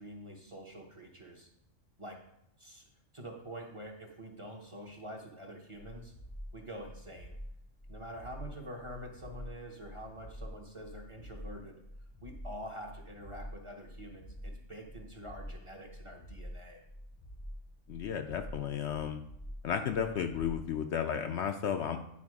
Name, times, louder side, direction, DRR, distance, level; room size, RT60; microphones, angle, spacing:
voice 1, 0.0-1.5 2.0-2.2 2.6-2.9 3.1-6.1 6.5-7.3 7.9-11.8 12.2-16.8, equal, 25° right, 1 dB, 0.9 m, -46 dB
sound 1, 5.7-20.7, equal, 20° left, 0.6 m, -47 dB
voice 2, 17.9-19.2 19.6-22.0, left 8 dB, 65° left, 6 dB, 0.8 m, -33 dB
9.6 x 4.7 x 4.7 m, 0.77 s
omnidirectional pair, 1.4 m